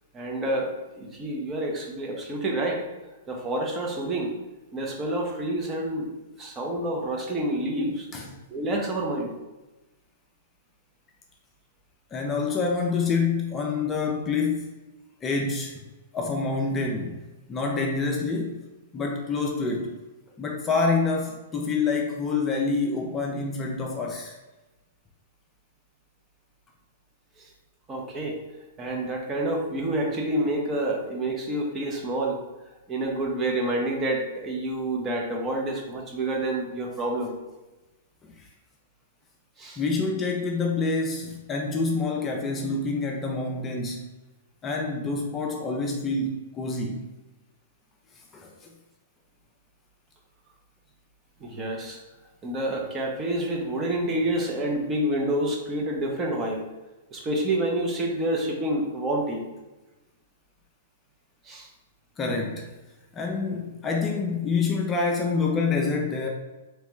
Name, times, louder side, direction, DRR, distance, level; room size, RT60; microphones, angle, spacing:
voice 1, 0.1-2.9 3.3-4.3 4.7-8.1 8.5-9.3 27.4-27.5 27.9-28.4 28.8-32.4 32.9-37.3 39.6-39.8 51.4-52.0 52.4-56.7 57.1-59.4 61.4-61.7, right 1 dB, 20° right, 0 dB, 0.7 m, -28 dB
voice 2, 12.1-14.7 15.2-15.7 16.1-17.2 17.5-18.7 18.9-20.0 20.4-24.4 38.2-38.5 39.8-44.1 44.6-47.1 48.3-48.5 62.2-62.7 63.1-66.3, left 4 dB, 20° left, 0 dB, 0.4 m, -27 dB
3.3 x 3.1 x 3.0 m, 1.1 s
hypercardioid pair, 130°, 0 cm